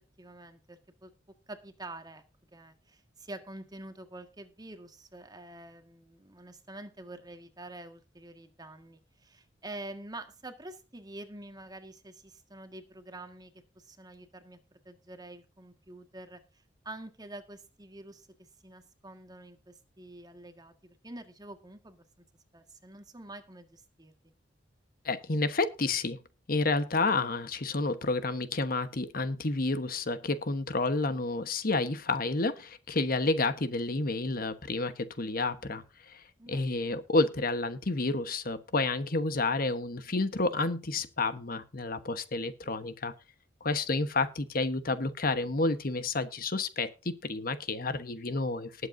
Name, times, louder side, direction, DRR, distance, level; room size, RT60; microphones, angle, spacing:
voice 1, 0.2-1.1 1.5-2.2 2.5-18.3 18.6-22.0 22.5-24.3 36.4-36.8, right 2 dB, 20° right, 7 dB, 1.8 m, -47 dB
voice 2, 25.0-26.2 26.5-36.2 36.5-43.1 43.6-48.7, left 3 dB, 50° left, 11 dB, 1.2 m, -30 dB
20.0 x 8.1 x 2.7 m, 0.33 s
head